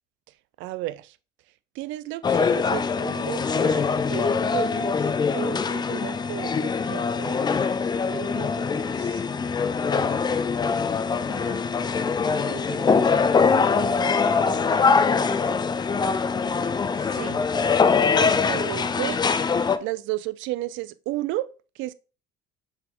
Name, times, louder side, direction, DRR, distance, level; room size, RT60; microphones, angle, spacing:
voice 1, 0.6-1.2 1.7-9.2 17.0-17.5 18.1-21.9, right 16 dB, 70° right, 0.5 m, -34 dB
sound 1, 2.2-19.8, left 5 dB, 20° left, 0.4 m, -23 dB
voice 2, 10.7-11.6 12.4-15.6 17.9-18.9, right 2 dB, 30° right, 2.5 m, -42 dB
7.0 x 4.0 x 3.7 m
cardioid pair, 115°, 21 cm